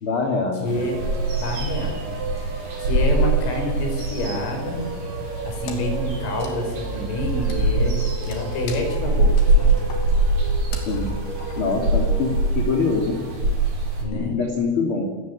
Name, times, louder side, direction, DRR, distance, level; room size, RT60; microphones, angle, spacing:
voice 1, 0.0-0.8 10.8-11.1 11.5-13.2 14.1-15.1, left 4 dB, 30° left, 1 dB, 3.0 m, -24 dB
voice 2, 0.6-1.0 1.3-2.2 2.8-4.8 5.5-9.8 14.0-14.4, left 2 dB, 75° left, 4 dB, 8.0 m, -28 dB
sound 1, 0.7-14.0, right 2 dB, 35° right, 6.7 m, -23 dB
sound 2, 0.7-13.4, right 3 dB, 65° right, 9.5 m, -35 dB
Wood, 5.7-12.4, left 5 dB, 60° left, 4.9 m, -43 dB
29.5 x 17.5 x 9.9 m, 1.5 s
omnidirectional pair, 5.8 m